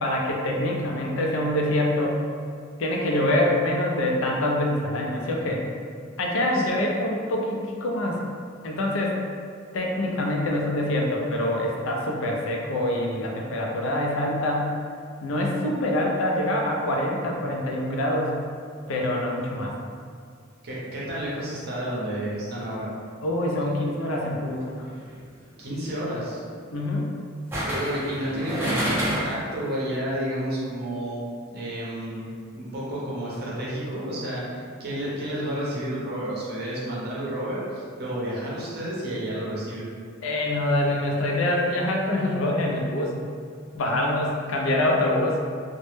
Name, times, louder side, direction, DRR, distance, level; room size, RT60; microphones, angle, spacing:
voice 1, 0.0-2.2 2.8-5.6 6.2-8.2 8.6-9.2 9.7-14.8 15.2-18.4 18.9-19.8 23.2-24.8 26.7-27.1 40.2-43.2 43.7-45.4, left 1 dB, 70° left, -1 dB, 0.4 m, -25 dB
voice 2, 20.6-22.9 25.6-26.4 27.6-31.2 31.5-32.2 32.5-39.9, right 1 dB, 50° right, -6 dB, 0.6 m, -31 dB
sound 1, 24.9-25.2 27.5-29.5 29.8-29.9, equal, 10° right, 0.5 m, -28 dB
2.1 x 2.0 x 3.1 m, 2.1 s
head